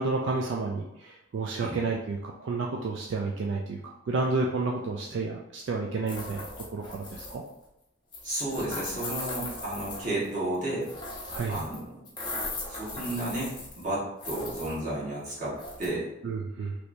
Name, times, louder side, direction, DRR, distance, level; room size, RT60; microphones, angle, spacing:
voice 1, 0.0-6.4 6.7-7.4 11.3-11.6 16.2-16.7, right 3 dB, 65° right, 0 dB, 0.3 m, -31 dB
sound 1, 6.1-7.5 8.1-10.3 10.8-11.8 12.1-13.9 14.2-14.8 15.6-15.9, left 2 dB, 20° left, 0.7 m, -38 dB
voice 2, 8.2-10.9 11.5-11.9 12.7-16.1, right 1 dB, 40° right, -8 dB, 1.3 m, -32 dB
3.1 x 3.0 x 2.6 m, 0.87 s
head